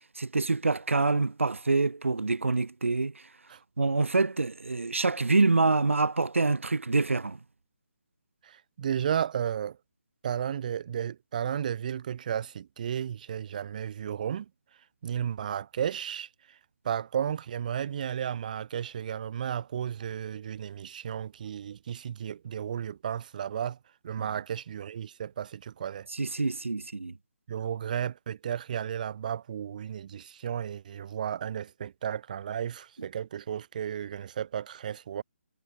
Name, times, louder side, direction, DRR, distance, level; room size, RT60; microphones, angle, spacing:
voice 1, 0.1-3.2 3.8-7.4 24.2-24.3 26.1-27.1, right 3 dB, 80° right, 5.0 m, -26 dB
voice 2, 8.4-9.8 10.2-14.5 15.0-16.6 16.8-23.8 24.0-26.1 27.5-35.2, right 9 dB, 40° right, 6.6 m, -33 dB
figure-of-eight pair, 160°, 7 cm